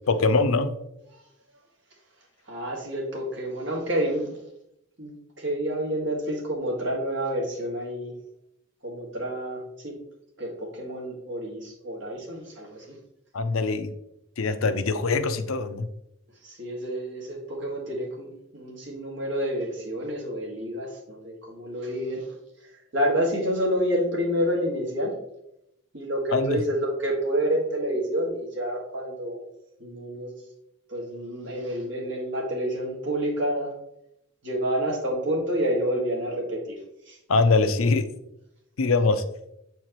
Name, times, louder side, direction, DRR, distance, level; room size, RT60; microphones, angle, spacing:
voice 1, 0.1-0.7 13.3-13.9 14.4-15.9 26.3-26.6 37.3-38.1 38.8-39.2, left 3 dB, 85° left, 10 dB, 0.6 m, -23 dB
voice 2, 2.5-4.4 5.0-8.1 8.8-9.9 10.4-13.0 16.4-22.3 22.6-25.1 25.9-29.4 29.8-30.3 30.9-33.7 34.4-36.8 37.1-37.2, equal, 60° right, -2 dB, 1.9 m, -29 dB
7.3 x 4.5 x 3.0 m, 0.81 s
head